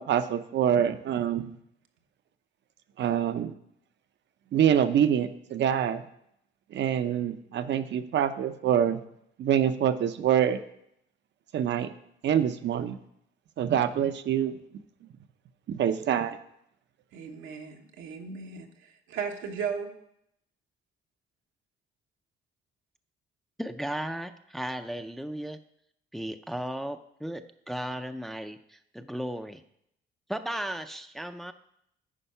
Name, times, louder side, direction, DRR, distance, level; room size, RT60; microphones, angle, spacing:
voice 1, 0.0-1.5 3.0-3.5 4.5-6.0 6.7-9.0 9.4-10.6 11.5-11.9 12.2-13.0 13.6-14.5 15.7-16.4, right 9 dB, 65° right, 11 dB, 0.7 m, -25 dB
voice 2, 17.1-18.7 19.1-20.0, right 6 dB, 85° right, 3 dB, 1.2 m, -35 dB
voice 3, 23.6-25.6 26.1-29.6 30.3-31.5, right 1 dB, ahead, 8 dB, 0.5 m, -35 dB
10.0 x 4.6 x 5.6 m, 0.75 s
cardioid pair, 90°, 20 cm